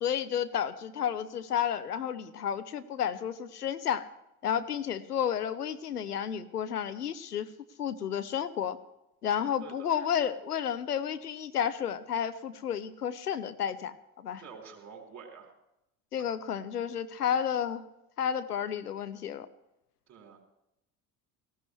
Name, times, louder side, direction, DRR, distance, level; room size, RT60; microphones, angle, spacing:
voice 1, 0.0-4.1 4.4-7.5 7.8-8.8 9.2-13.9 14.2-14.4 16.1-17.8 18.2-19.5, left 8 dB, 90° left, 12 dB, 0.7 m, -31 dB
voice 2, 14.4-15.5 20.1-20.4, right 6 dB, 35° right, 1 dB, 4.3 m, -48 dB
18.0 x 15.5 x 3.3 m, 0.87 s
figure-of-eight pair, 60°, 45 cm